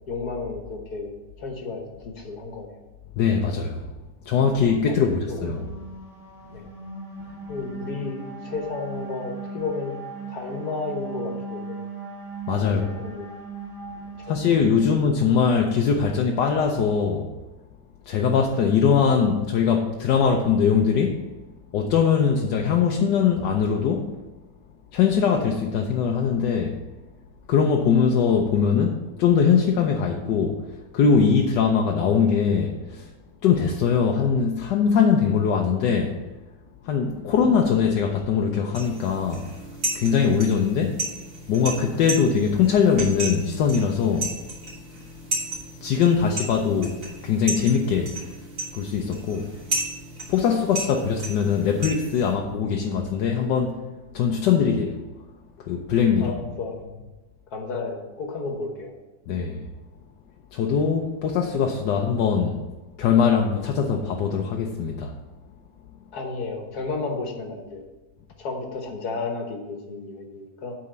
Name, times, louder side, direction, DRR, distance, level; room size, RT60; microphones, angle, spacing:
voice 1, 0.1-2.8 4.9-5.7 6.5-6.7 7.5-9.9 10.3-11.8 12.6-13.3 14.2-14.4 14.8-14.9 37.2-37.3 50.9-51.0 56.2-56.9 57.5-58.9 66.1-67.8 68.4-70.8, left 3 dB, 60° left, 2 dB, 1.7 m, -33 dB
voice 2, 3.2-3.9 4.3-5.6 12.5-12.8 14.3-17.3 18.1-21.2 21.7-24.1 24.9-26.8 27.5-30.6 30.9-33.1 33.4-36.1 36.8-39.4 39.9-41.0 41.5-44.3 45.8-47.0 47.2-48.1 48.7-49.5 50.3-53.7 54.1-55.0 55.7-56.3 59.3-59.7 60.5-62.6 63.0-65.1, left 6 dB, 75° left, 1 dB, 1.3 m, -21 dB
sound 1, 5.0-15.3, right 3 dB, ahead, 2.1 m, -38 dB
sound 2, 38.7-52.3, right 2 dB, 45° right, 2.9 m, -34 dB
8.6 x 4.2 x 6.7 m, 1.1 s
omnidirectional pair, 2.0 m